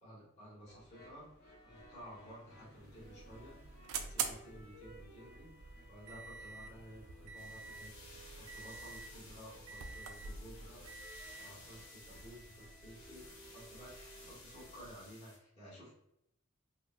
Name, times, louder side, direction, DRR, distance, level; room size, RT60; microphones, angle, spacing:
voice 1, 0.0-3.6 4.0-7.9 8.3-11.0 11.4-15.9, equal, 30° left, -7 dB, 1.2 m, -54 dB
sound 1, 0.7-14.8, right 1 dB, 45° left, 0.7 m, -59 dB
sound 2, 2.7-15.1, right 6 dB, 75° right, 0.4 m, -47 dB
sound 3, 7.4-15.4, left 2 dB, 70° left, 1.4 m, -57 dB
3.7 x 2.1 x 2.5 m, 0.81 s
head